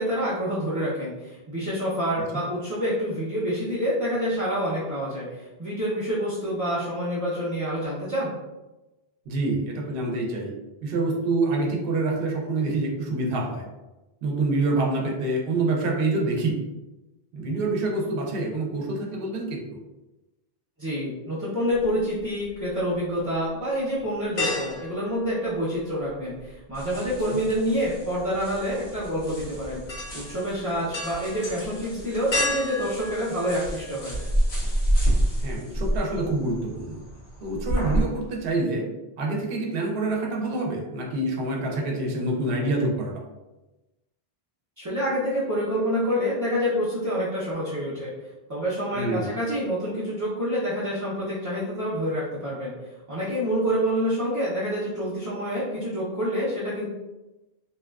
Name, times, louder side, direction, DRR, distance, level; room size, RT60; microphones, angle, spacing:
voice 1, 0.0-8.3 20.8-29.8 30.1-34.2 44.8-48.1 48.5-52.7 53.1-56.9, equal, 25° right, -11 dB, 0.4 m, -27 dB
voice 2, 9.3-10.5 10.8-13.6 14.2-16.6 17.3-19.6 27.3-27.4 35.4-37.0 37.4-38.9 39.2-43.1 48.9-49.3, right 2 dB, 65° right, -1 dB, 0.8 m, -26 dB
sound 1, 21.7-22.7 23.2-23.3 24.4-26.1 26.4-34.3 34.7-34.8 36.2-36.8 37.1-37.3 37.6-38.1 38.4-38.5, left 2 dB, 65° left, 1.0 m, -34 dB
sound 2, 26.7-38.0, right 1 dB, 85° left, 1.3 m, -29 dB
2.7 x 2.2 x 2.2 m, 1.0 s
omnidirectional pair, 1.1 m